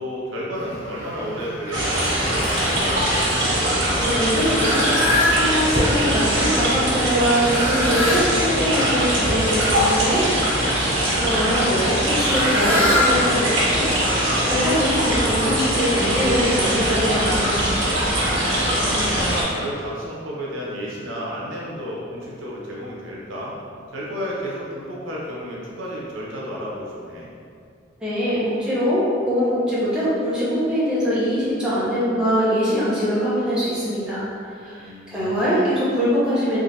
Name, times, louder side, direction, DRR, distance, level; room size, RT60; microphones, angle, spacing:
voice 1, 0.0-3.3 18.4-23.6 23.9-27.3 34.8-35.5, equal, 80° right, -5 dB, 0.8 m, -32 dB
Fowl, 0.5-15.9, left 1 dB, 65° left, 1.3 m, -28 dB
sound 1, 1.7-19.4, right 1 dB, 65° right, 1.2 m, -21 dB
voice 2, 4.0-4.9 5.3-10.3 11.1-17.7 28.0-36.6, equal, 5° right, -11 dB, 0.8 m, -23 dB
3.7 x 3.1 x 2.7 m, 2.4 s
head